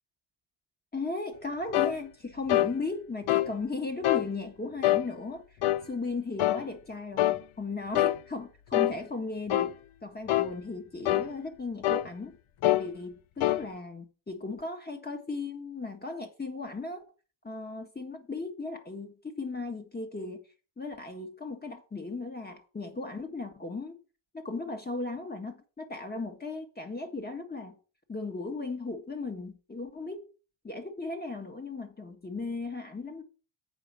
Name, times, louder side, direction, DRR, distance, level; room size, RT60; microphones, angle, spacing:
voice 1, 0.9-5.4 5.9-9.7 10.0-12.4 12.6-17.0 17.4-20.4 20.8-24.0 24.3-27.8 28.1-30.3 30.6-33.2, left 3 dB, 20° left, 1.6 m, -36 dB
sound 1, 1.7-2.0 2.5-2.7 3.3-3.5 4.0-4.3 4.8-5.1 5.6-5.9 6.4-6.6 7.2-7.4 8.0-8.2 8.7-9.0 9.5-9.7 10.3-10.5 11.1-11.3 11.8-12.1 12.6-12.9 13.4-13.6, left 15 dB, 85° left, 0.6 m, -25 dB
8.2 x 5.1 x 6.9 m
wide cardioid pair, 125°, 49 cm